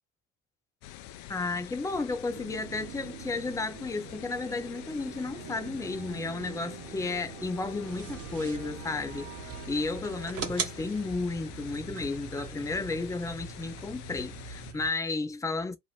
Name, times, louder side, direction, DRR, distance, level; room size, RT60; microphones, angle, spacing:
sound 1, 0.8-14.7, left 13 dB, 60° left, 0.5 m, -47 dB
voice 1, 1.3-15.8, left 3 dB, 10° left, 0.6 m, -33 dB
sound 2, 2.3-13.7, right 11 dB, 70° right, 0.6 m, -47 dB
sound 3, 7.9-14.9, right 6 dB, 40° right, 1.0 m, -41 dB
2.7 x 2.1 x 3.3 m
hypercardioid pair, 70°, 36 cm